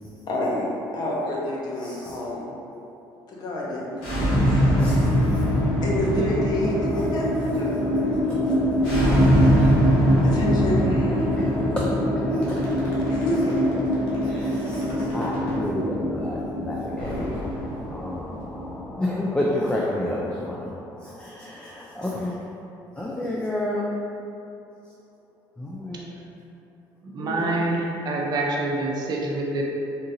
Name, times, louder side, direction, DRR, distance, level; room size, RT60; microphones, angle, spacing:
voice 1, 0.3-0.7 0.9-2.5 3.3-4.5 5.8-7.3 7.5-7.8 8.5-9.3 10.2-11.3 13.1-13.6, left 1 dB, 50° left, -4 dB, 0.8 m, -28 dB
voice 2, 1.8-2.2 4.7-5.4 8.3-8.9 9.5-9.7 10.1-10.4 11.3-11.5 11.8-12.9 14.2-22.6 23.0-23.9 25.6-26.2 27.2-27.7, left 1 dB, 10° left, -4 dB, 0.3 m, -31 dB
sound 1, 3.9-18.9, equal, 75° left, 1.4 m, -22 dB
sound 2, 12.4-15.6 17.0-18.4, left 1 dB, 90° left, 0.9 m, -36 dB
voice 3, 27.1-29.6, right 2 dB, 50° right, -2 dB, 0.5 m, -26 dB
3.7 x 2.7 x 2.6 m, 2.8 s
cardioid pair, 105°, 9 cm